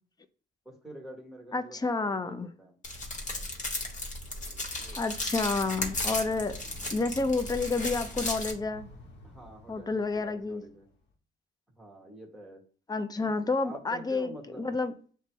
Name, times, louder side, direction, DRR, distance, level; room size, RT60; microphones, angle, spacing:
voice 1, 0.6-2.8 4.7-5.1 9.2-10.9 11.7-12.6 13.2-13.3 13.6-14.7, right 1 dB, ahead, 1.4 m, -47 dB
voice 2, 1.5-2.5 5.0-6.6 6.9-8.9 9.7-10.6 12.9-14.9, left 3 dB, 20° left, 0.4 m, -30 dB
sound 1, 2.8-8.5, left 2 dB, 40° left, 1.2 m, -35 dB
sound 2, 5.7-11.1, left 1 dB, 60° left, 0.9 m, -50 dB
6.6 x 2.2 x 3.1 m
cardioid pair, 90°, 20 cm